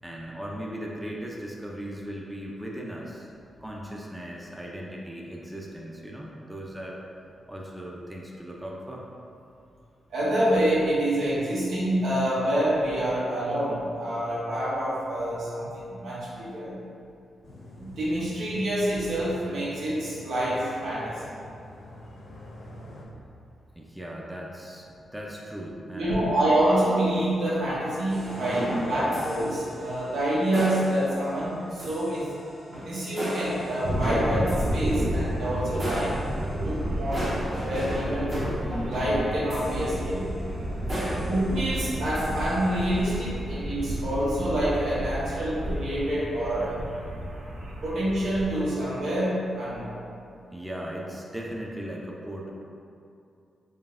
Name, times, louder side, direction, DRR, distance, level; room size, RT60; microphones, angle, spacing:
voice 1, 0.0-3.3 3.6-7.0 7.5-9.1 23.8-26.4 40.9-41.3 50.5-52.5, equal, 5° right, -2 dB, 0.4 m, -38 dB
voice 2, 10.1-16.7 17.8-21.2 25.9-32.3 32.8-36.2 36.6-38.3 38.9-40.3 41.3-46.8 47.8-49.9, right 1 dB, 85° right, -8 dB, 1.1 m, -27 dB
sound 1, 17.4-23.1, left 1 dB, 70° left, 0.7 m, -46 dB
sound 2, 28.1-43.2, equal, 45° right, 1.0 m, -36 dB
sound 3, 33.8-48.6, equal, 65° right, 0.5 m, -31 dB
3.8 x 3.4 x 2.5 m, 2.6 s
cardioid pair, 95°, 0 cm